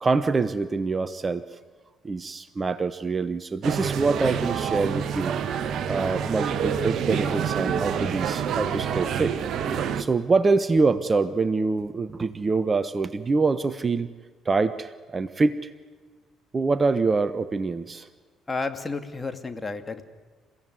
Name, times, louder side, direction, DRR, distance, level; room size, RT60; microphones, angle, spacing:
voice 1, 0.0-1.4 2.0-5.3 5.9-9.4 9.9-14.1 14.4-15.7 16.5-18.1, right 4 dB, 30° right, 14 dB, 1.1 m, -25 dB
sound 1, 3.6-10.0, right 7 dB, 55° right, 1.4 m, -27 dB
voice 2, 18.5-20.0, left 3 dB, 25° left, 8 dB, 2.4 m, -31 dB
29.5 x 16.5 x 9.6 m, 1.5 s
figure-of-eight pair, 50°, 0 cm